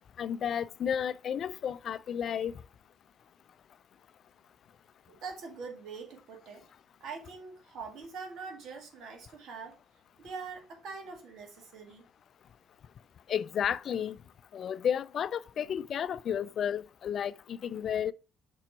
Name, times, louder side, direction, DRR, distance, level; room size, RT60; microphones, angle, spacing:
voice 1, 0.2-2.5 13.3-14.2 14.5-18.1, left 8 dB, 60° left, 0.4 m, -32 dB
voice 2, 5.1-6.6 7.0-9.8 10.2-12.0, right 5 dB, 70° right, 2.0 m, -43 dB
6.1 x 4.4 x 4.4 m
supercardioid pair, 65°, 0 cm